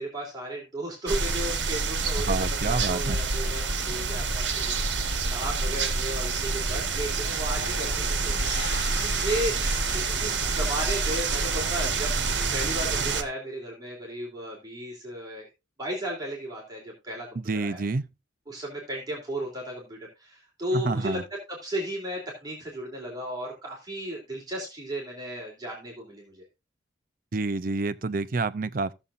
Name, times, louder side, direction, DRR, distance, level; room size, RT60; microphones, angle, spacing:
voice 1, 0.0-8.4 8.7-9.6 9.9-12.1 12.5-15.5 15.8-17.8 18.5-21.2 21.5-26.4, right 1 dB, 20° right, 3.2 m, -35 dB
sound 1, 1.1-13.2, right 4 dB, 70° right, 1.3 m, -27 dB
voice 2, 2.3-3.2 17.4-18.0 20.7-21.2 27.3-28.9, right 3 dB, 50° right, 0.6 m, -28 dB
sound 2, 7.6-12.1, left 3 dB, 60° left, 5.1 m, -41 dB
16.0 x 7.0 x 2.5 m
head